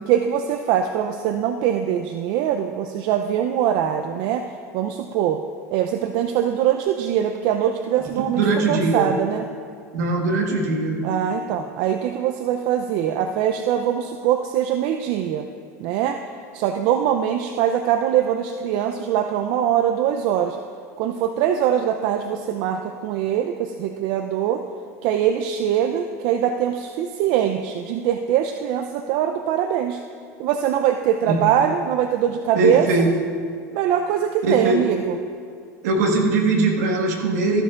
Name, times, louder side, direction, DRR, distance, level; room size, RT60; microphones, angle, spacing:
voice 1, 0.1-4.4 4.7-5.4 5.7-9.4 11.0-15.5 15.8-16.2 16.5-20.6 21.0-24.6 25.0-30.0 30.4-33.1 33.7-35.2, right 9 dB, 65° right, 6 dB, 0.5 m, -22 dB
voice 2, 8.2-9.1 9.9-11.0 31.2-31.4 32.6-33.1 34.4-34.8 35.8-37.6, right 2 dB, 80° right, 1 dB, 1.5 m, -21 dB
13.5 x 12.0 x 2.5 m, 2.2 s
hypercardioid pair, 85°, 9 cm